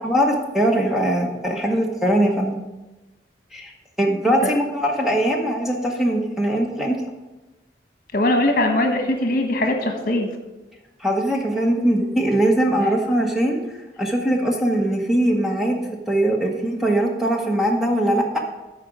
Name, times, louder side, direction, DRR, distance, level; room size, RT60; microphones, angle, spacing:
voice 1, 0.0-2.6 3.5-3.7 4.0-7.0 11.0-13.6 14.0-15.8 16.1-18.4, right 1 dB, ahead, 0 dB, 1.0 m, -21 dB
voice 2, 8.1-10.3, left 1 dB, 50° left, 4 dB, 1.3 m, -21 dB
13.5 x 5.0 x 5.1 m, 1.1 s
head